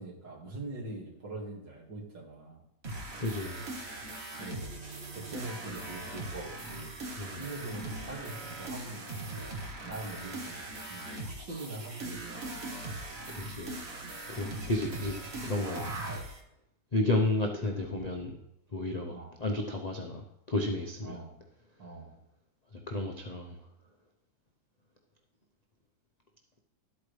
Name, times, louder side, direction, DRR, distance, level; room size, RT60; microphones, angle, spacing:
voice 1, 0.0-2.6 4.4-4.7 5.1-7.0 7.3-9.2 9.8-12.5 17.6-17.8 19.1-19.4 21.0-21.4 21.8-22.2, right 2 dB, 85° right, -2 dB, 2.8 m, -43 dB
sound 1, 2.8-16.4, right 2 dB, 40° right, 1.3 m, -40 dB
voice 2, 3.2-3.6 7.2-7.4 13.3-13.8 14.3-15.9 16.9-18.4 18.7-19.1 19.4-21.2 22.7-23.6, left 2 dB, 35° left, 1 dB, 0.6 m, -32 dB
12.5 x 8.4 x 3.3 m, 0.81 s
omnidirectional pair, 1.9 m